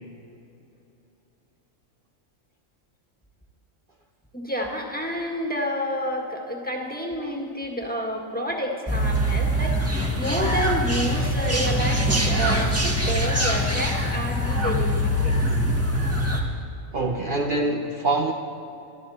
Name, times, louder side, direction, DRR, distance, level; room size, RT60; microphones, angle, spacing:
voice 1, 4.3-15.3, equal, 5° left, 0 dB, 1.8 m, -29 dB
sound 1, 8.9-16.4, equal, 10° right, 1.4 m, -23 dB
voice 2, 16.9-18.3, right 2 dB, 45° right, 1 dB, 1.0 m, -24 dB
22.5 x 13.0 x 4.3 m, 2.8 s
omnidirectional pair, 1.4 m